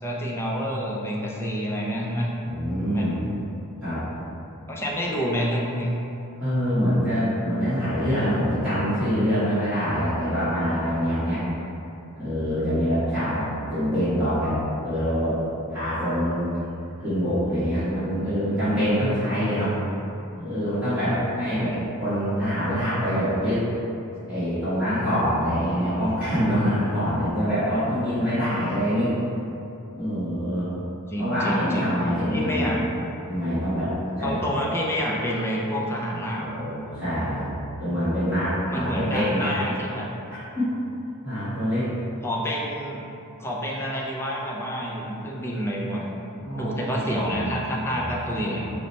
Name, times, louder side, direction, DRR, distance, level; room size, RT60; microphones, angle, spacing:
voice 1, 0.0-2.3 2.9-3.2 4.7-5.9 21.5-21.8 31.1-31.9 32.3-32.8 34.2-36.5 38.7-40.1 42.2-43.0 43.4-46.1 46.6-48.6, equal, 10° left, -3 dB, 0.5 m, -28 dB
voice 2, 2.4-3.1 3.8-4.0 6.4-11.4 12.2-14.6 14.8-15.4 15.7-16.5 17.0-19.7 20.4-21.7 22.0-23.6 24.3-29.1 29.9-30.7 31.2-32.8 33.3-33.9 34.2-34.6 36.4-37.5 37.8-39.5 40.3-40.7 41.2-41.9 46.4-47.4 47.9-48.6, equal, 5° right, -16 dB, 1.1 m, -25 dB
4.8 x 2.1 x 4.0 m, 2.8 s
head